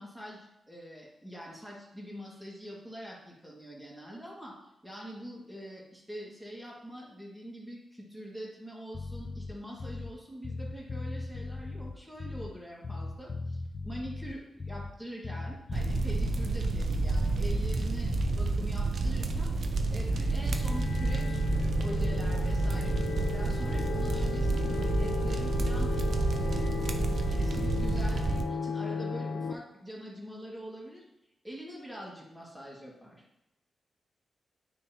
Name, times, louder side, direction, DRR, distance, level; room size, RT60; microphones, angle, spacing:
voice 1, 0.0-4.5 4.8-19.5 19.9-23.0 23.3-25.9 26.3-26.7 27.1-31.0 31.4-33.2, equal, 5° right, -5 dB, 2.0 m, -44 dB
Bass guitar, 8.9-10.2 10.4-12.6 12.8-15.0 15.2-17.4 17.6-18.5, left 3 dB, 40° left, 0.4 m, -38 dB
sound 1, 15.7-28.4, right 3 dB, 60° right, 0.6 m, -29 dB
sound 2, 20.0-29.5, left 5 dB, 90° left, 0.5 m, -35 dB
9.3 x 3.8 x 3.0 m, 0.89 s
cardioid pair, 100°, 0 cm